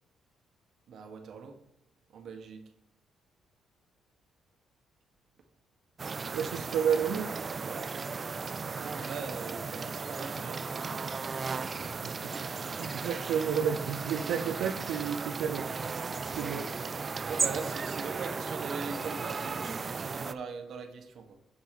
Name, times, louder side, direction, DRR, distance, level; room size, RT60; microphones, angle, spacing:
voice 1, 0.9-1.6 2.1-2.6 7.6-7.9 8.5-11.1 16.4-16.6 17.2-21.4, right 5 dB, 65° right, 1.4 m, -41 dB
sound 1, 6.0-20.3, right 4 dB, 35° right, 0.4 m, -35 dB
voice 2, 6.3-7.3 12.0-12.2 12.4-15.7 16.4-16.6, right 8 dB, 85° right, 0.6 m, -31 dB
7.6 x 5.9 x 4.2 m
cardioid pair, 90°, 0 cm